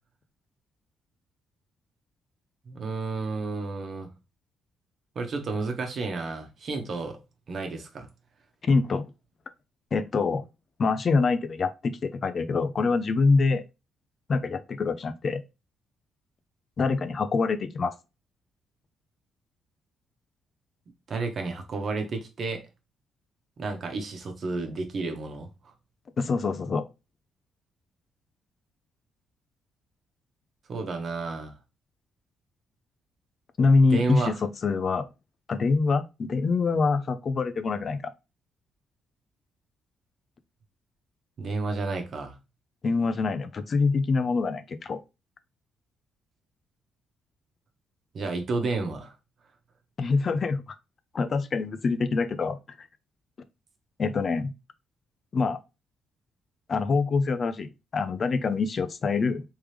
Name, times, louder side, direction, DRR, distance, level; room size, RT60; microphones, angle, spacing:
voice 1, 2.7-4.1 5.1-7.2 7.5-8.1 21.1-22.6 23.6-25.5 30.7-31.5 33.9-34.3 41.4-42.4 48.1-49.1, right 3 dB, 50° right, 1.1 m, -31 dB
voice 2, 8.6-9.0 9.9-10.4 10.8-13.6 14.3-15.4 16.8-17.9 26.2-26.8 33.6-35.0 35.5-38.1 42.8-45.0 50.0-50.8 51.1-52.6 54.0-54.5 55.3-55.6 56.7-59.4, left 4 dB, 45° left, 0.5 m, -25 dB
3.5 x 3.3 x 3.2 m
cardioid pair, 90°, 0 cm